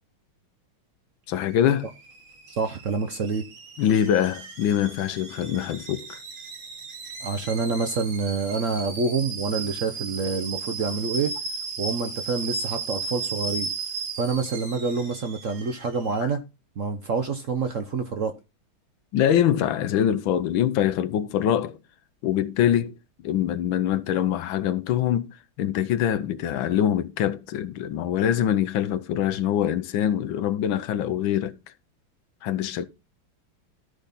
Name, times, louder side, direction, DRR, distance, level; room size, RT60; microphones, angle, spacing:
voice 1, 1.3-1.9 3.8-6.2 19.1-21.8 22.2-22.9 23.2-25.3 25.6-31.6 32.4-32.9, left 10 dB, 80° left, 1.5 m, -24 dB
Alarm / Boiling, 1.4-16.2, right 4 dB, 85° right, 2.8 m, -36 dB
voice 2, 2.5-3.4 7.2-11.3 11.8-13.7 14.2-16.4 16.8-18.3, right 4 dB, 55° right, 0.9 m, -27 dB
13.0 x 5.3 x 4.1 m
omnidirectional pair, 2.2 m